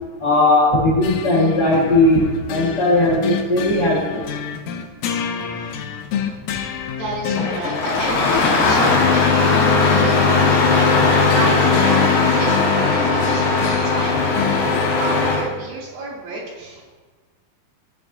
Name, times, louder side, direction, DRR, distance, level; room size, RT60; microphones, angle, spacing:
voice 1, 0.2-4.2, left 2 dB, 55° left, -5 dB, 1.2 m, -17 dB
sound 1, 1.0-15.3, left 7 dB, 90° left, 1.7 m, -28 dB
voice 2, 5.6-5.9 6.9-16.9, right 2 dB, 75° right, -5 dB, 4.1 m, -30 dB
Engine starting, 7.3-15.5, left 4 dB, 70° left, 3.1 m, -18 dB
14.5 x 8.5 x 2.6 m, 1.3 s
omnidirectional pair, 4.3 m